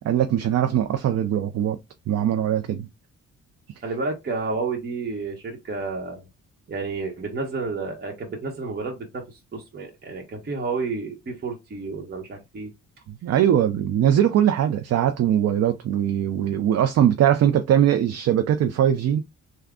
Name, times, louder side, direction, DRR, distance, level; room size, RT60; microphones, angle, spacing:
voice 1, 0.0-1.8 2.1-2.9 13.2-19.2, right 10 dB, 55° right, 0.5 m, -21 dB
voice 2, 3.8-6.2 6.7-12.7, right 4 dB, 35° right, 1.0 m, -30 dB
3.5 x 2.2 x 3.6 m
cardioid pair, 90°, 30 cm